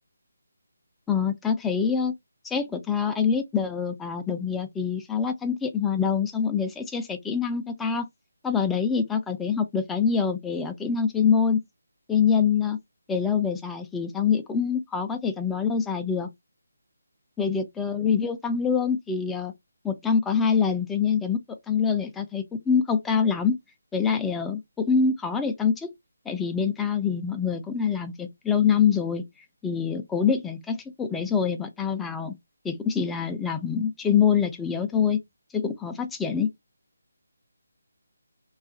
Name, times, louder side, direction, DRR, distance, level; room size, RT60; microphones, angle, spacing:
voice 1, 1.1-2.1 2.4-8.1 8.4-11.6 12.1-12.8 13.1-16.3 17.4-19.5 19.8-21.4 21.7-23.6 23.9-25.9 26.3-29.2 29.6-32.4 32.6-35.2 35.5-36.5, left 6 dB, 5° left, 0.3 m, -25 dB
2.7 x 2.3 x 2.5 m
figure-of-eight pair, 160°, 0 cm